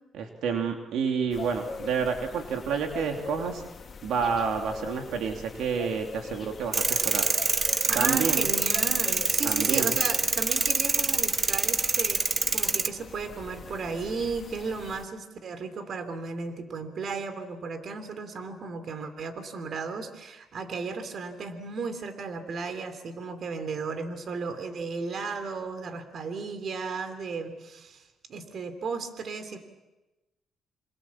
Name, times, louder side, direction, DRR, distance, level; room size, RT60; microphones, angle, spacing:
voice 1, 0.2-3.6 4.0-7.3 7.6-7.7 7.9-8.5 9.4-9.9, right 6 dB, 80° right, 3 dB, 2.9 m, -29 dB
sound 1, 1.3-15.0, left 5 dB, 45° left, 2.2 m, -43 dB
sound 2, 6.7-12.9, right 4 dB, 30° right, 1.0 m, -26 dB
voice 2, 7.9-28.0 28.3-29.6, right 4 dB, 55° right, 9 dB, 3.2 m, -35 dB
27.0 x 27.0 x 7.3 m, 1.1 s
cardioid pair, 90°, 0 cm